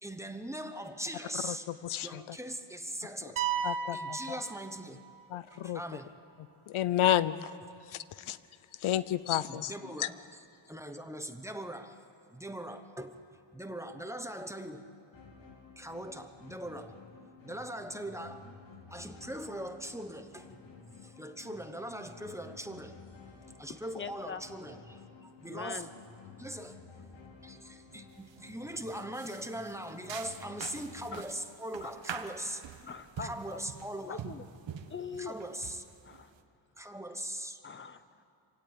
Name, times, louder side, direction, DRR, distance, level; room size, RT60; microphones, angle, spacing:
voice 1, 0.0-1.7 2.0-5.0 5.3-6.1 9.5-11.9 12.3-13.2 13.5-14.9 15.8-17.0 17.4-18.4 18.9-20.5 21.0-22.9 23.6-25.9 26.4-26.8 27.4-32.6 33.2-34.3 35.2-35.8 36.8-37.6, right 1 dB, 5° right, 7 dB, 0.9 m, -41 dB
voice 2, 1.3-2.4 3.6-4.4 5.3-5.8 6.7-7.6 7.9-8.4 8.8-9.7 10.0-10.1, left 11 dB, 85° left, 17 dB, 0.8 m, -31 dB
sound 1, 3.4-5.3, right 7 dB, 80° right, 1.5 m, -34 dB
sound 2, 15.1-31.1, left 4 dB, 65° left, 3.5 m, -53 dB
voice 3, 23.9-24.4 25.4-25.9 31.1-31.2 31.8-31.9 32.8-33.6 34.0-34.5 34.9-35.4 36.0-36.3 37.6-38.2, left 6 dB, 25° left, 12 dB, 0.8 m, -42 dB
sound 3, 28.1-28.4 28.8-36.4, right 8 dB, 65° right, 1.4 m, -45 dB
26.5 x 17.0 x 8.8 m, 2.6 s
wide cardioid pair, 175°, 47 cm